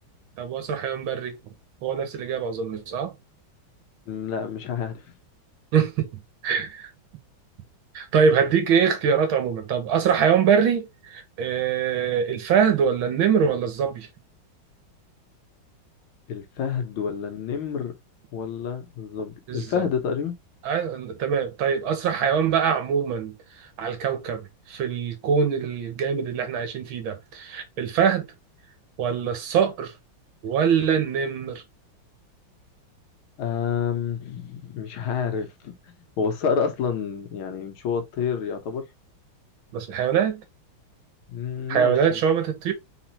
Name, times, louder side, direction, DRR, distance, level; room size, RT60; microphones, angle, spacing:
voice 1, 0.4-1.4 1.8-3.1 5.7-6.1 6.4-6.9 7.9-14.1 19.5-19.9 20.6-23.3 23.8-28.3 29.0-29.9 30.4-31.6 39.7-40.4 41.7-42.7, right 7 dB, 75° right, 1.9 m, -23 dB
voice 2, 4.1-5.0 16.3-17.9 18.3-20.3 33.4-35.7 36.2-38.9 41.3-42.2, left 6 dB, 80° left, 1.9 m, -28 dB
4.2 x 4.1 x 2.9 m
omnidirectional pair, 2.2 m